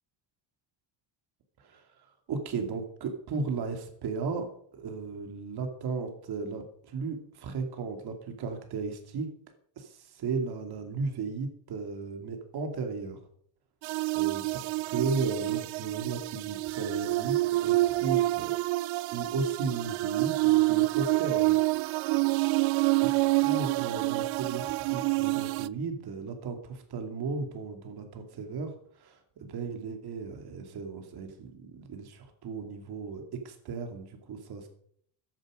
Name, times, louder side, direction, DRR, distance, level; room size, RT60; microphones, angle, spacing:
voice 1, 1.6-9.3 9.8-13.2 14.1-18.6 19.1-21.6 23.0-23.1 23.4-34.7, right 4 dB, 50° right, 5 dB, 2.7 m, -35 dB
sound 1, 13.8-25.7, right 21 dB, 70° right, 0.6 m, -27 dB
14.5 x 10.5 x 5.1 m, 0.64 s
cardioid pair, 155°, 49 cm